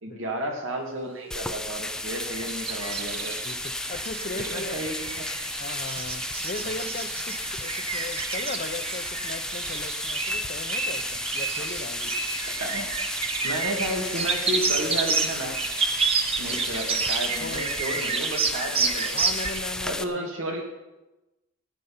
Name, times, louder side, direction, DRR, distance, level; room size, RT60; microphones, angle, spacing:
voice 1, 0.0-3.4 4.3-5.3 6.6-6.7 12.6-12.9 13.4-15.6 16.4-19.2 19.8-20.6, right 1 dB, 90° right, 1 dB, 2.5 m, -32 dB
sound 1, 1.3-20.0, left 1 dB, 5° left, 0.4 m, -34 dB
sound 2, 1.8-17.6, right 7 dB, 50° right, 0.6 m, -44 dB
sound 3, 1.9-19.6, right 4 dB, 30° right, 1.0 m, -30 dB
voice 2, 3.4-4.7 5.6-12.2 17.4-18.1 19.1-20.3, left 3 dB, 45° left, 11 dB, 0.7 m, -38 dB
15.5 x 9.2 x 5.6 m, 1.0 s
head